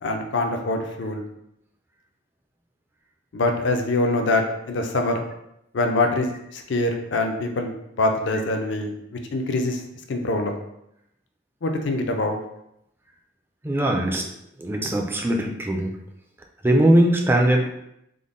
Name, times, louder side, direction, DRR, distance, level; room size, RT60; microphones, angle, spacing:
voice 1, 0.0-1.3 3.3-5.2 5.7-9.8 10.1-10.6 11.6-12.4, left 2 dB, 65° left, 4 dB, 0.5 m, -24 dB
voice 2, 13.6-14.2 14.6-15.9 16.6-17.7, right 1 dB, 10° right, 1 dB, 0.3 m, -20 dB
3.7 x 2.1 x 3.7 m, 0.80 s
head